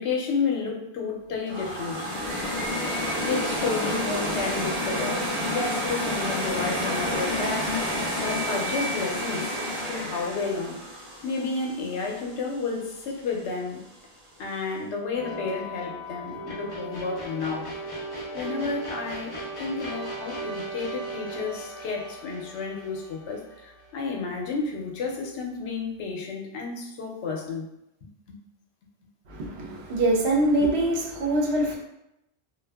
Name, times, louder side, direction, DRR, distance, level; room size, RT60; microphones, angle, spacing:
voice 1, 0.0-2.1 3.2-9.6 9.8-13.9 14.4-17.7 18.3-27.7 28.3-28.4, left 4 dB, 85° left, 0 dB, 0.9 m, -31 dB
sound 1, 1.5-12.5, equal, 35° right, 0.6 m, -29 dB
sound 2, 15.1-24.4, right 1 dB, 40° left, 0.5 m, -37 dB
voice 2, 29.3-31.8, right 1 dB, 70° right, 0 dB, 0.8 m, -24 dB
2.5 x 2.3 x 2.2 m, 0.84 s
omnidirectional pair, 1.1 m